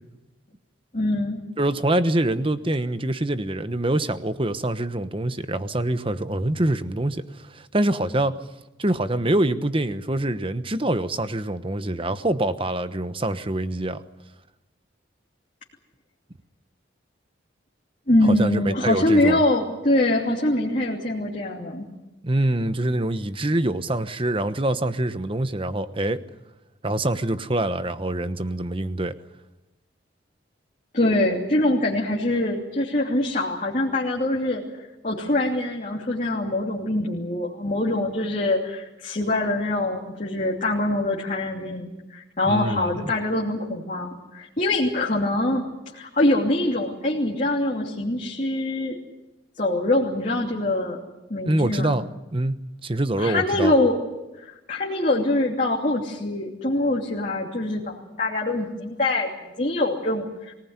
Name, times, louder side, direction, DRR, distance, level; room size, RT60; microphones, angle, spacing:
voice 1, 0.9-1.4 18.1-21.9 30.9-45.6 45.9-49.0 49.6-51.0 51.3-51.9 53.2-53.9 54.3-60.5, left 1 dB, 40° left, -3 dB, 2.9 m, -24 dB
voice 2, 1.6-7.2 7.5-8.4 8.8-14.0 18.2-19.4 22.2-26.2 26.8-29.1 42.4-43.1 51.4-52.0 52.3-53.7, right 1 dB, 25° right, 11 dB, 1.0 m, -25 dB
24.0 x 18.5 x 9.7 m, 1.0 s
head